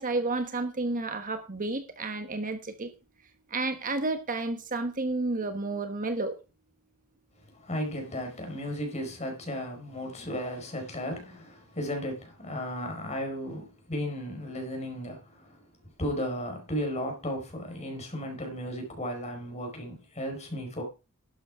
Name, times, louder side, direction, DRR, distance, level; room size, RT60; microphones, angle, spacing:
voice 1, 0.0-2.9 3.5-6.4, right 2 dB, 40° right, 1.2 m, -31 dB
voice 2, 7.5-15.6 16.0-20.8, equal, 30° left, 4.9 m, -35 dB
12.0 x 8.1 x 4.8 m
head